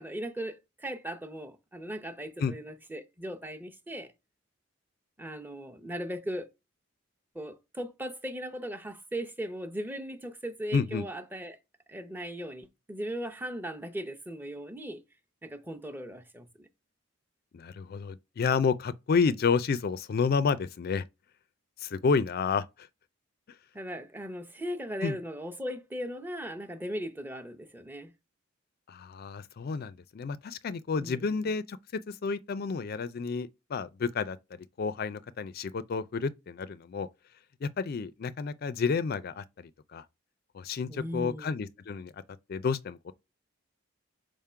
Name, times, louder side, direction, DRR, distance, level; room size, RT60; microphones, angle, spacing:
voice 1, 0.0-4.1 5.2-6.5 7.3-11.6 11.9-15.0 15.4-16.7 23.7-28.1 31.0-31.5 40.9-41.5, equal, 10° right, 0.7 m, -38 dB
voice 2, 10.7-11.0 17.5-21.0 21.8-22.9 25.0-25.2 28.9-31.8 32.1-37.1 37.6-40.0 40.5-42.2 42.5-43.1, left 5 dB, 50° left, 0.4 m, -30 dB
5.1 x 3.6 x 5.5 m
head